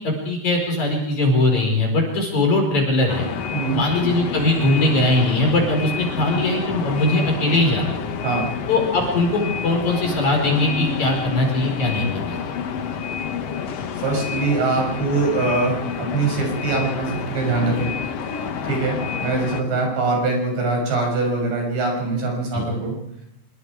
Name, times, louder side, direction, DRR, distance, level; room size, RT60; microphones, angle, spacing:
voice 1, 0.0-3.3 3.7-8.0 8.7-12.4 22.5-22.6, left 2 dB, 40° left, 2 dB, 5.9 m, -20 dB
sound 1, 3.1-19.6, left 6 dB, 65° left, 1.6 m, -29 dB
voice 2, 14.0-17.9 18.6-23.0, right 3 dB, 75° right, 0 dB, 9.0 m, -23 dB
26.0 x 23.0 x 4.9 m, 0.83 s
omnidirectional pair, 5.0 m